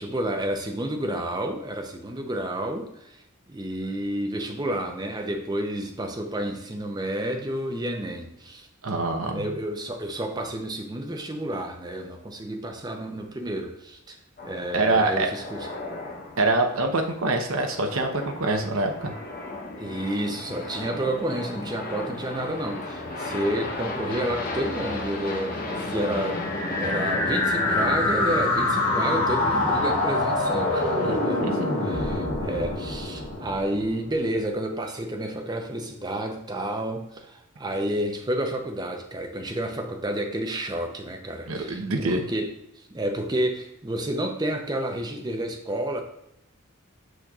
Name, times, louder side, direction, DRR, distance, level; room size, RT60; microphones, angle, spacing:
voice 1, 0.0-3.2 3.5-8.7 9.2-14.2 14.4-15.7 19.8-31.4 31.8-42.5 42.9-46.0, right 1 dB, 20° right, 3 dB, 0.6 m, -30 dB
voice 2, 8.8-9.5 14.7-15.3 16.4-19.1 31.0-31.5 41.5-42.2, right 2 dB, 70° right, 4 dB, 0.8 m, -25 dB
sound 1, 14.4-31.2, left 2 dB, 40° left, 0.9 m, -34 dB
sound 2, 26.3-34.2, left 2 dB, 85° left, 1.6 m, -26 dB
6.4 x 6.3 x 2.4 m, 0.82 s
head